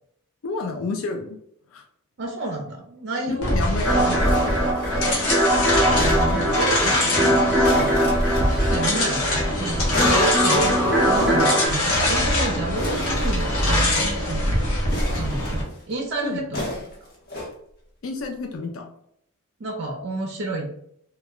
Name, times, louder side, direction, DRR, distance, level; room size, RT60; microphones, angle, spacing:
voice 1, 0.4-1.4 1.7-1.8 3.3-4.6 16.2-16.4 18.0-18.9, left 3 dB, 65° left, 3 dB, 0.3 m, -30 dB
voice 2, 2.2-4.0 5.8-14.6 15.2-16.9 19.6-20.8, right 2 dB, 50° right, 1 dB, 0.4 m, -31 dB
sound 1, 3.4-15.6, left 1 dB, 90° left, 0.8 m, -23 dB
sound 2, 3.8-11.7, right 1 dB, 5° right, 0.6 m, -22 dB
sound 3, 4.2-5.2 5.9-6.7 7.6-8.7 9.9-11.6 11.9-12.0 12.2-12.3 12.8-13.9 14.9-15.8 16.5-17.5 18.2-18.3, left 1 dB, 45° left, 0.8 m, -32 dB
2.2 x 2.1 x 3.5 m, 0.71 s
head